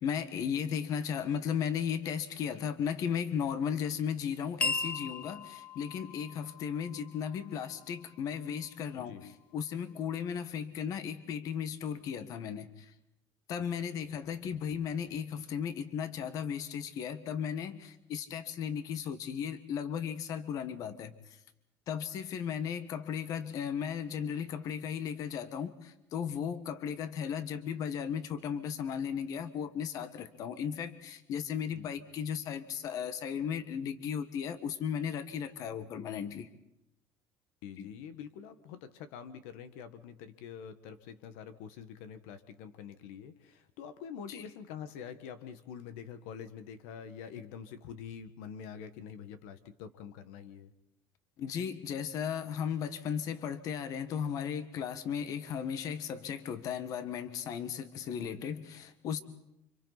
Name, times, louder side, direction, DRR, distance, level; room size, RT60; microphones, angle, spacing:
voice 1, 0.0-12.7 13.5-21.1 21.9-36.5 37.8-37.9 44.3-44.4 51.4-59.2, left 8 dB, 50° left, 11 dB, 1.5 m, -35 dB
sound 1, 4.6-9.2, left 3 dB, 15° left, 1.5 m, -39 dB
voice 2, 37.6-50.7, left 7 dB, 90° left, 11 dB, 1.5 m, -46 dB
29.5 x 26.5 x 4.1 m, 0.83 s
cardioid pair, 140°, 8 cm